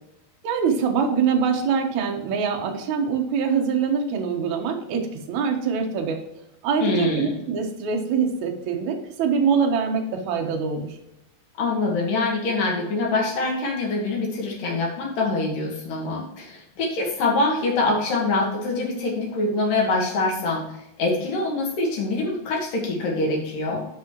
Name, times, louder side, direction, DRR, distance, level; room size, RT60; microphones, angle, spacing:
voice 1, 0.4-6.2 6.6-11.0, right 6 dB, 60° right, 2 dB, 2.1 m, -24 dB
voice 2, 6.8-7.4 11.6-23.9, left 3 dB, 60° left, -1 dB, 3.7 m, -24 dB
11.5 x 5.7 x 3.1 m, 0.86 s
omnidirectional pair, 4.5 m